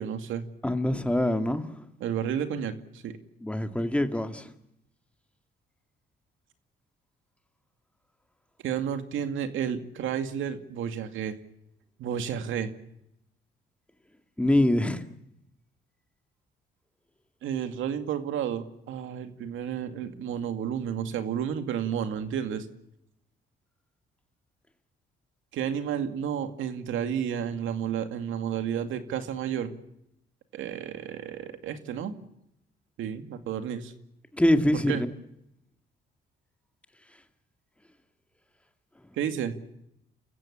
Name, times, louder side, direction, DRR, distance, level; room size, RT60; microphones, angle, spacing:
voice 1, 0.0-0.4 2.0-3.2 8.6-11.4 12.0-12.7 17.4-22.7 25.5-29.7 30.5-32.1 33.0-33.9 34.7-35.0 39.1-39.5, right 8 dB, 85° right, 2.3 m, -31 dB
voice 2, 0.6-1.6 3.4-4.5 14.4-15.0 34.4-35.1, left 1 dB, 5° left, 2.2 m, -24 dB
29.0 x 15.5 x 8.7 m
cardioid pair, 90°, 20 cm